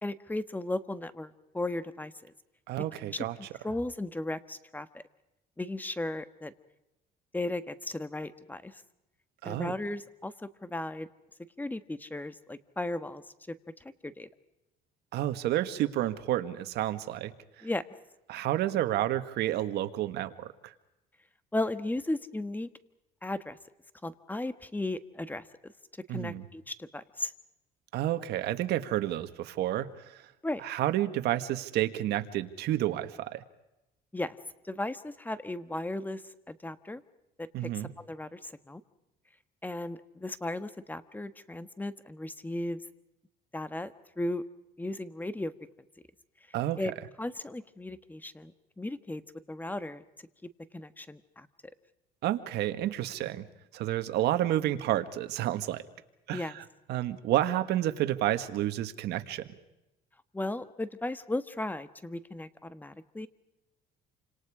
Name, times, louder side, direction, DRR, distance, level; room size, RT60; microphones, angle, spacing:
voice 1, 0.0-2.3 3.6-5.0 5.6-6.5 7.3-8.8 9.4-10.3 10.6-11.1 11.6-13.5 14.0-14.3 17.6-17.8 21.5-22.7 23.2-23.6 24.0-25.7 26.1-27.3 30.4-30.6 34.1-34.4 34.6-37.0 37.4-38.8 39.6-42.8 43.5-44.4 44.8-45.5 46.8-46.9 47.2-48.5 48.8-49.2 49.5-50.0 50.7-51.5 56.3-56.6 60.3-63.3, left 2 dB, 10° left, 12 dB, 1.4 m, -36 dB
voice 2, 2.7-3.3 9.4-9.7 15.1-17.3 18.3-20.7 26.1-26.4 27.9-29.9 30.1-30.2 30.6-33.4 37.5-37.9 46.5-46.8 52.2-53.4 53.7-55.8 56.3-56.6 56.9-59.4, right 13 dB, 80° right, 10 dB, 1.7 m, -30 dB
28.5 x 26.5 x 5.0 m, 0.92 s
cardioid pair, 110°, 17 cm